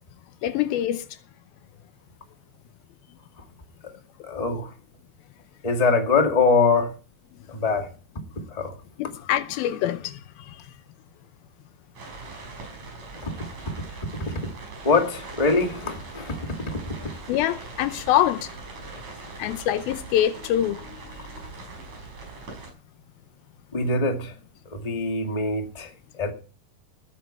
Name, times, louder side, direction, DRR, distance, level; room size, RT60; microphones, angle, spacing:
voice 1, 0.4-1.2 9.0-10.7 17.3-18.5 19.4-21.3, left 12 dB, 80° left, 2.5 m, -25 dB
voice 2, 4.2-4.7 5.6-7.0 7.5-7.9 8.5-8.7 13.2-13.3 14.8-16.3 16.7-16.9 23.7-24.3 24.7-25.9 26.2-26.3, left 4 dB, 15° left, 1.6 m, -23 dB
sound 1, 12.0-22.7, right 3 dB, 50° right, 6.4 m, -41 dB
19.0 x 9.4 x 4.6 m
omnidirectional pair, 4.5 m